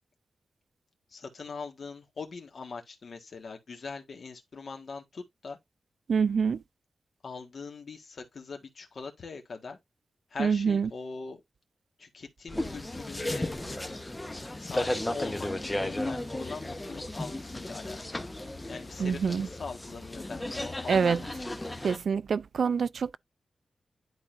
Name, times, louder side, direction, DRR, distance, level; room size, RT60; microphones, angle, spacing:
voice 1, 1.1-5.6 7.2-9.8 10.3-11.4 12.0-13.5 14.6-21.5, left 4 dB, 50° left, 1.6 m, -42 dB
voice 2, 6.1-6.6 10.4-10.9 19.0-19.5 20.9-21.2 21.8-23.2, right 6 dB, 60° right, 0.3 m, -26 dB
sound 1, 12.5-22.0, left 1 dB, 15° left, 0.9 m, -35 dB
11.0 x 3.9 x 2.6 m
wide cardioid pair, 150°, 0 cm